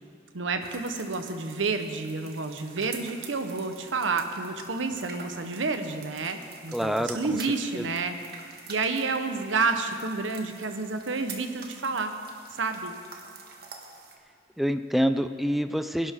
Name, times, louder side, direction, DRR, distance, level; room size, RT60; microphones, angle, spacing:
voice 1, 0.3-12.1 12.5-12.9, right 4 dB, 85° right, 7 dB, 1.0 m, -30 dB
sound 1, 0.6-14.2, right 5 dB, 55° right, 1.4 m, -46 dB
voice 2, 6.7-7.4 7.7-7.9 14.6-16.1, equal, ahead, 9 dB, 0.4 m, -26 dB
21.5 x 11.5 x 3.7 m, 2.2 s
head